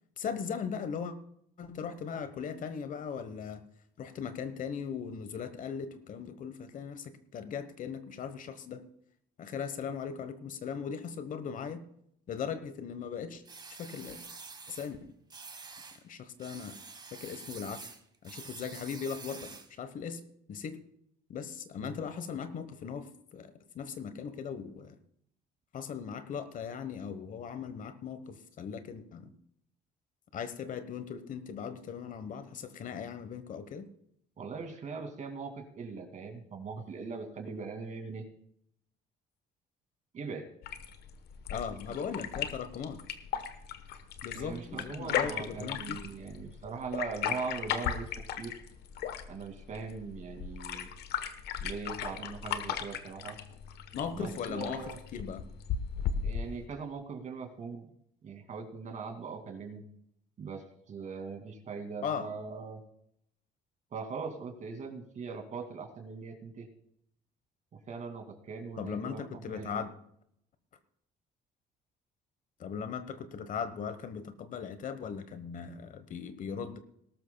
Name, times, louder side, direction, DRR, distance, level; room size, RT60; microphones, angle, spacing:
voice 1, 0.2-1.1 1.6-3.6 4.0-8.9 9.4-11.8 12.3-13.4 13.7-14.2 14.7-15.0 16.0-16.8 17.1-17.9 18.2-20.2 20.5-20.8 21.3-25.0 25.7-29.3 30.3-33.9 41.5-43.0 44.2-46.0 53.9-55.4 62.0-62.3 68.8-69.9 72.6-76.8, left 6 dB, 50° left, 11 dB, 1.1 m, -38 dB
sound 1, 13.4-14.9 15.3-16.0 16.4-19.8, right 4 dB, 25° right, 1.3 m, -47 dB
voice 2, 34.4-38.2 40.1-40.5 44.3-48.1 48.4-48.5 49.3-50.9 51.6-53.4 54.1-55.0 56.2-57.9 58.2-59.8 60.4-62.8 63.9-66.7 67.7-69.8, right 5 dB, 45° right, 5 dB, 2.4 m, -40 dB
sound 2, 40.6-56.6, left 8 dB, 75° left, 1.1 m, -37 dB
19.5 x 12.5 x 2.3 m, 0.71 s
cardioid pair, 110°, 17 cm